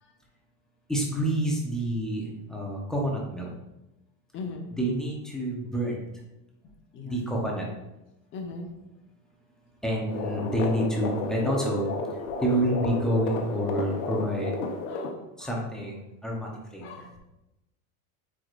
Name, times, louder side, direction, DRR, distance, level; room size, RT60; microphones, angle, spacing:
voice 1, 0.9-3.5 4.8-6.0 7.0-7.7 9.8-11.9 12.4-14.6 15.4-17.1, right 1 dB, ahead, -3 dB, 0.8 m, -28 dB
voice 2, 4.3-4.7 6.9-7.3 8.3-8.7 14.9-15.1 15.4-15.5 16.8-17.0, left 3 dB, 30° left, 2 dB, 0.9 m, -39 dB
sound 1, 10.1-15.1, left 3 dB, 75° left, 1.1 m, -32 dB
8.5 x 4.8 x 2.5 m, 0.94 s
supercardioid pair, 170°, 40 cm